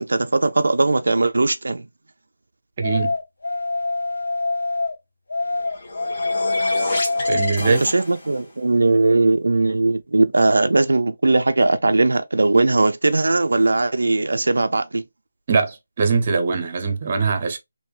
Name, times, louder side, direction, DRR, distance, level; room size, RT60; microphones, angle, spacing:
voice 1, 0.0-1.9 7.7-15.0, right 2 dB, 80° right, 0.3 m, -19 dB
sound 1, 2.8-4.9 5.3-7.6, left 3 dB, 80° left, 0.3 m, -24 dB
voice 2, 2.8-3.1 7.3-7.9 15.5-17.6, right 4 dB, 30° right, 0.7 m, -21 dB
sound 2, 5.5-8.5, left 2 dB, 45° left, 1.3 m, -30 dB
3.5 x 2.6 x 2.4 m
figure-of-eight pair, 170°, 0 cm